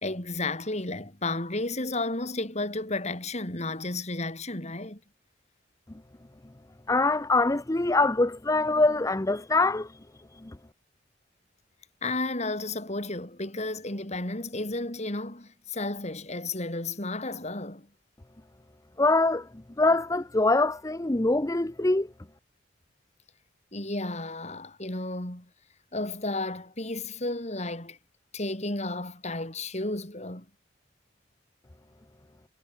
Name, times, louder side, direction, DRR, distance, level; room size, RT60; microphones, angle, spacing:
voice 1, 0.0-5.0 12.0-17.9 23.7-25.5 25.9-28.0 28.3-30.5, left 2 dB, 35° left, 4.3 m, -32 dB
voice 2, 6.9-10.0 10.3-10.6 19.0-19.5 19.8-22.1, left 2 dB, 15° left, 0.7 m, -24 dB
head